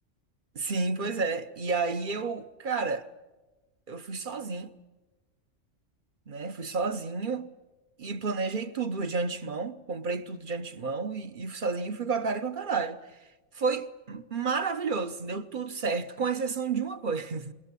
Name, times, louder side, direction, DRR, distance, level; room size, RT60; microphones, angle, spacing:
voice 1, 0.5-3.1 3.9-4.7 6.3-7.5 8.0-13.0 13.5-17.5, right 4 dB, 45° right, 1.1 m, -31 dB
27.0 x 21.5 x 8.3 m
omnidirectional pair, 1.3 m